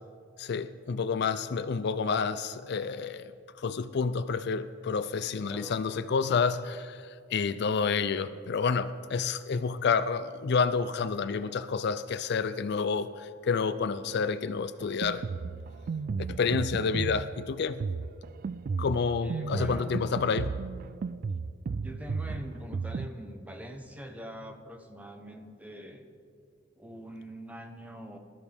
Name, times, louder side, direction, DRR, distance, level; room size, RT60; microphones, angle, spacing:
voice 1, 0.4-3.3 3.6-15.2 16.3-17.8 18.8-20.5, left 5 dB, 55° left, 0.4 m, -29 dB
Drum kit, 14.8-23.1, right 4 dB, 45° right, 0.3 m, -34 dB
voice 2, 19.2-19.9 21.8-26.1 26.8-28.2, equal, 10° right, 1.0 m, -43 dB
20.5 x 13.0 x 3.5 m
head